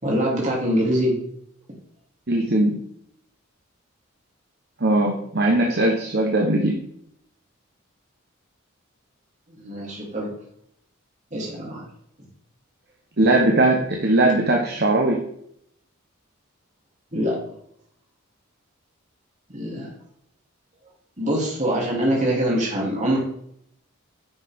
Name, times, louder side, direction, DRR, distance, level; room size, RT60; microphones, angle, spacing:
voice 1, 0.0-1.1 9.5-10.3 11.3-11.8 17.1-17.4 19.5-19.9 21.2-23.2, equal, 35° right, -3 dB, 3.2 m, -24 dB
voice 2, 2.3-2.7 4.8-6.8 13.2-15.2, right 2 dB, 50° right, 0 dB, 1.2 m, -19 dB
10.0 x 6.5 x 3.7 m, 0.70 s
head